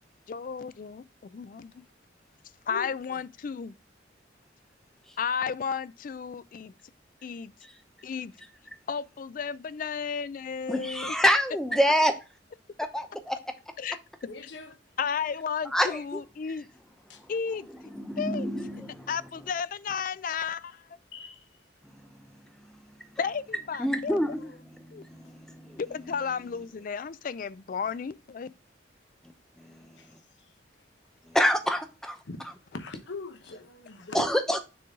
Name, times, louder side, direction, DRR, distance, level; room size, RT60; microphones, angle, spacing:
voice 1, 0.3-1.8 2.7-3.8 5.2-6.7 7.2-7.5 8.0-8.3 8.9-11.2 13.8-14.0 15.0-16.7 17.3-17.7 18.2-18.5 19.1-20.8 23.2-24.2 24.9-25.0 25.8-28.5, left 6 dB, 45° left, 0.3 m, -33 dB
voice 2, 2.7-3.2 14.3-14.7 17.1-17.2 21.1-21.5 30.0-30.1 32.2-32.4 32.7-34.3, left 3 dB, 70° left, 0.8 m, -41 dB
voice 3, 10.7-12.1 12.9-13.4 15.7-16.0 17.9-19.1 23.8-24.5 24.8-25.8 29.6-30.0 31.3-32.2 34.1-34.6, equal, 5° left, 0.7 m, -26 dB
6.7 x 3.9 x 3.6 m
head